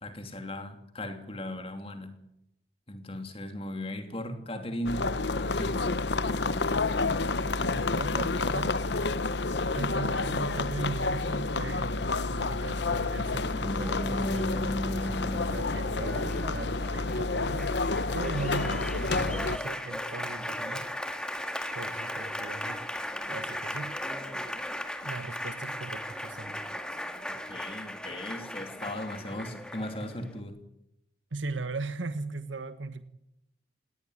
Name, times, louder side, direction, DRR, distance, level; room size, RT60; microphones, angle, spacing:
voice 1, 0.0-2.2 2.9-5.1 5.4-6.1 27.3-30.6, left 1 dB, 30° left, 6 dB, 3.0 m, -37 dB
sound 1, 4.8-19.6, left 3 dB, 65° left, 1.0 m, -29 dB
voice 2, 7.6-9.1 9.7-20.9 21.3-21.4 21.7-22.9 23.3-24.0 25.0-26.6 31.3-33.0, right 3 dB, 85° right, 11 dB, 1.4 m, -38 dB
Applause, 13.4-30.4, left 1 dB, 5° left, 1.9 m, -36 dB
19.5 x 18.5 x 9.8 m, 0.81 s
head